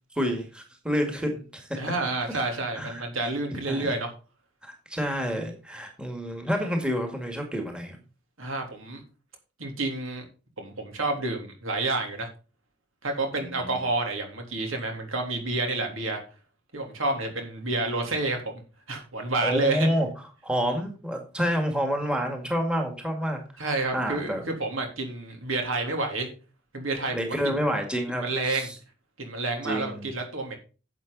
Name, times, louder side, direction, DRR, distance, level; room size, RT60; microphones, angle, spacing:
voice 1, 0.1-1.8 2.3-3.0 3.7-3.9 4.6-8.0 13.4-13.7 19.4-20.1 20.4-24.4 27.1-28.7 29.6-30.1, equal, 5° right, 3 dB, 1.9 m, -29 dB
voice 2, 1.8-4.1 8.4-9.0 9.6-10.3 10.6-12.3 13.0-16.2 16.7-18.5 18.9-19.9 23.6-26.3 26.7-27.1 28.2-28.7 29.2-30.6, right 2 dB, 70° right, 3 dB, 3.3 m, -29 dB
11.0 x 7.7 x 4.0 m, 0.34 s
head